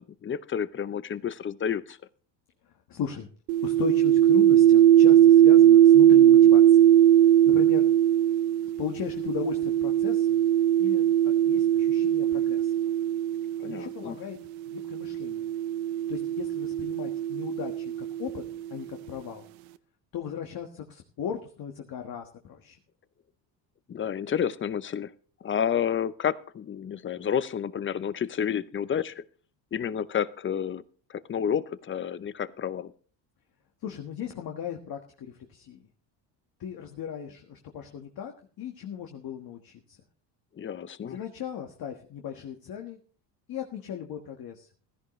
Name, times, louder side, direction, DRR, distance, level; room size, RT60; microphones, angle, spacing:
voice 1, 0.0-2.0 13.6-14.2 23.9-25.1 25.4-29.2 29.7-30.8 31.3-32.9 40.6-41.2, left 8 dB, 25° left, 16 dB, 0.7 m, -30 dB
voice 2, 2.9-3.3 3.6-6.9 7.5-7.9 8.8-10.4 10.8-11.0 11.5-12.7 13.6-14.4 14.7-15.5 16.1-18.4 18.7-19.4 20.1-22.8 33.8-35.8 36.6-40.0 41.0-43.0 43.5-44.7, left 9 dB, 50° left, 3 dB, 1.6 m, -37 dB
sound 1, 3.5-13.9 14.8-18.5, right 11 dB, 85° right, 0.8 m, -20 dB
15.5 x 13.5 x 3.2 m, 0.42 s
cardioid pair, 110°, 45 cm